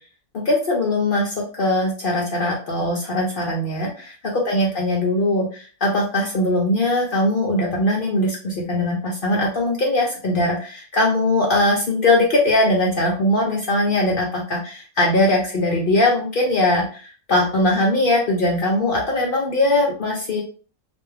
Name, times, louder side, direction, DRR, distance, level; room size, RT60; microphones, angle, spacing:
voice 1, 0.3-20.4, left 1 dB, 60° left, -2 dB, 0.5 m, -20 dB
2.5 x 2.2 x 3.2 m, 0.39 s
omnidirectional pair, 1.5 m